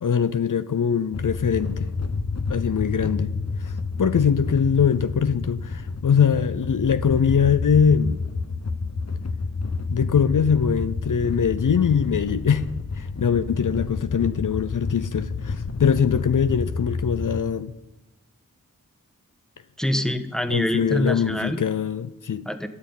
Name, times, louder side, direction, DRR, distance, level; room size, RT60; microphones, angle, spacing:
voice 1, 0.0-1.9 2.5-3.3 3.6-3.7 4.0-8.2 9.9-12.6 12.9-17.7 20.5-22.5, left 7 dB, 65° left, 0.6 m, -22 dB
sound 1, 1.1-17.4, left 4 dB, 50° left, 1.0 m, -29 dB
voice 2, 19.8-21.6 22.4-22.7, equal, ahead, 1.3 m, -25 dB
13.0 x 7.2 x 9.8 m
cardioid pair, 40°, 34 cm